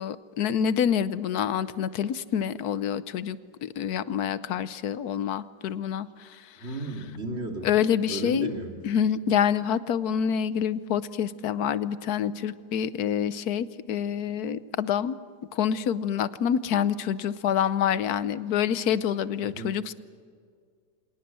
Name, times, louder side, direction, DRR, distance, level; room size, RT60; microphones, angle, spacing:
voice 1, 0.0-6.4 7.6-8.5 8.8-15.2 15.5-19.9, left 8 dB, 70° left, 15 dB, 1.3 m, -27 dB
voice 2, 6.6-7.7 8.1-8.8 19.6-19.8, right 2 dB, 40° right, 2 dB, 3.2 m, -34 dB
26.5 x 18.5 x 7.6 m, 2.1 s
omnidirectional pair, 1.8 m